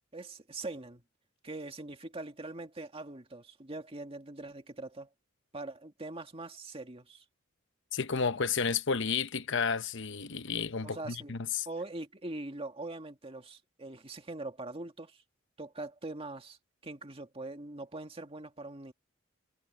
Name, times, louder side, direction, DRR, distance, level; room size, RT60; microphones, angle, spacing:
voice 1, 0.1-1.0 1.4-5.1 5.5-7.2 10.8-11.4 11.7-15.2 15.6-16.6 16.8-18.9, right 2 dB, 30° right, 2.0 m, -42 dB
voice 2, 7.9-11.7, left 5 dB, 60° left, 1.0 m, -31 dB
head